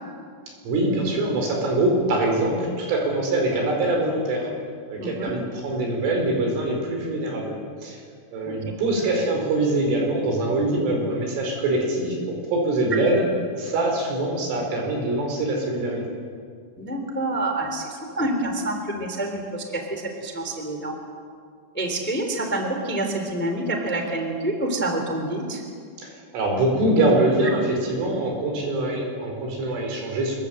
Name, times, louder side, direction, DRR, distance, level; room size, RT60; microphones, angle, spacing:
voice 1, 0.7-4.5 4.9-8.0 8.3-12.2 12.5-13.2 13.6-16.0 26.0-30.4, right 2 dB, 85° right, 1 dB, 7.2 m, -23 dB
voice 2, 5.0-5.3 8.4-8.5 16.8-20.9 21.7-25.6, right 1 dB, 5° left, 4 dB, 2.2 m, -27 dB
26.0 x 22.0 x 7.8 m, 2.1 s
omnidirectional pair, 5.5 m